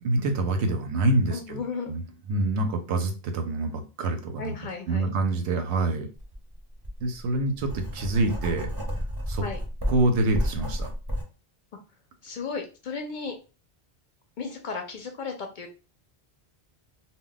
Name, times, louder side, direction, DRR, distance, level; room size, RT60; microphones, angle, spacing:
voice 1, 0.0-1.6 1.9-2.0 2.3-4.5 4.9-6.1 7.0-8.7 9.3-9.4 9.9-10.9, right 2 dB, 85° right, 5 dB, 0.9 m, -26 dB
voice 2, 1.3-2.0 4.4-5.1 9.4-9.6 12.2-13.3 14.4-15.7, left 5 dB, 60° left, 4 dB, 0.6 m, -35 dB
Writing, 6.2-6.3 6.8-11.2, equal, 25° right, 0.7 m, -31 dB
2.2 x 2.1 x 3.8 m, 0.33 s
omnidirectional pair, 1.1 m